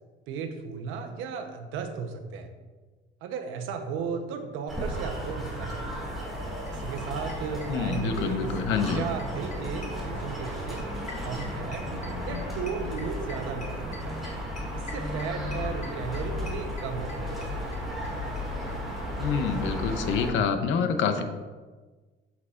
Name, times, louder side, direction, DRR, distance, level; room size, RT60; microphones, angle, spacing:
voice 1, 0.3-2.5 3.2-6.0 6.7-8.5 8.9-10.8 11.2-11.9 12.3-14.2 14.7-17.5, right 6 dB, 85° right, 5 dB, 0.9 m, -35 dB
sound 1, 4.7-20.3, equal, ahead, 2.1 m, -34 dB
sound 2, 6.3-6.4 6.7-6.8 7.0-8.6 8.9-18.1 18.4-18.5 18.7-18.8 19.0-19.1, left 3 dB, 35° left, 1.1 m, -45 dB
voice 2, 7.7-9.1 19.2-21.2, left 6 dB, 75° left, 8 dB, 0.8 m, -27 dB
8.2 x 7.3 x 2.5 m, 1.3 s
cardioid pair, 140°, 20 cm